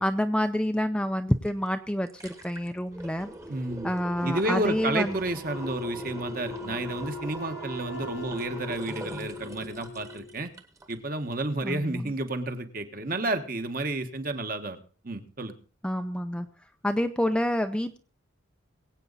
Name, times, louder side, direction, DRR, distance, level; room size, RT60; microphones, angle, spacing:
voice 1, 0.0-3.3 3.8-5.2 11.6-12.1 15.8-16.5 16.8-18.0, equal, 5° left, 8 dB, 0.5 m, -28 dB
sound 1, 1.5-1.6 1.9-11.0 11.3-11.4, right 1 dB, 15° right, 1.2 m, -41 dB
voice 2, 3.5-3.9 4.2-10.5 10.9-14.8 15.0-15.6, right 2 dB, 45° right, 7 dB, 1.3 m, -31 dB
Wind instrument woodwind instrument, 5.5-10.5, left 4 dB, 60° left, 0.9 m, -40 dB
22.5 x 8.4 x 4.1 m, 0.40 s
head